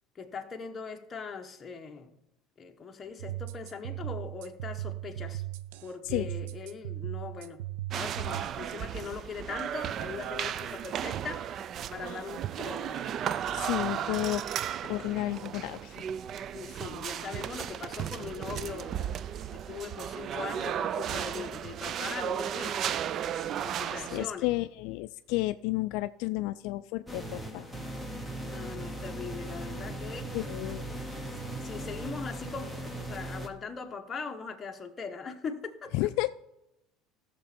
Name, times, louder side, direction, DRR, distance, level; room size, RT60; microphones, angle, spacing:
voice 1, 0.1-2.2 2.6-5.4 5.8-7.6 7.9-11.6 11.9-13.0 16.5-19.0 19.5-22.8 23.6-24.5 28.5-30.3 31.6-36.1, left 5 dB, 20° left, 1.0 m, -40 dB
sound 1, 3.2-8.4, right 16 dB, 85° right, 0.5 m, -38 dB
sound 2, 7.9-24.3, right 9 dB, 35° right, 0.3 m, -35 dB
voice 2, 13.6-14.4 14.8-16.0 24.0-27.7 30.3-31.0 35.9-36.3, left 18 dB, 65° left, 0.3 m, -32 dB
sound 3, 27.1-33.5, right 1 dB, 5° right, 0.9 m, -38 dB
15.0 x 6.8 x 4.2 m
cardioid pair, 160°, 0 cm